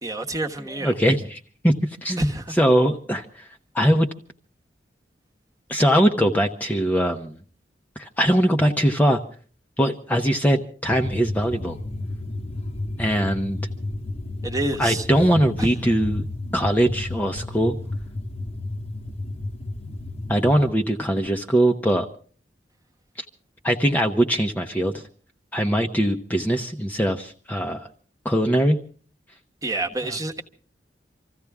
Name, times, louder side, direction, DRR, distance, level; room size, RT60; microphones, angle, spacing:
voice 1, 0.0-0.9 2.2-2.5 14.4-15.1 29.6-30.4, right 2 dB, 20° right, 1.3 m, -27 dB
voice 2, 0.8-1.7 2.0-2.3 2.6-3.5 3.7-4.1 5.7-7.3 8.0-9.2 9.8-11.8 13.0-13.6 14.8-16.2 16.5-17.8 20.3-22.1 23.2-23.3 23.6-25.0 25.5-27.9 28.2-28.8 30.0-30.2, equal, 10° left, 0.9 m, -21 dB
sound 1, 10.9-20.7, left 2 dB, 35° left, 1.0 m, -32 dB
26.0 x 15.0 x 3.5 m
head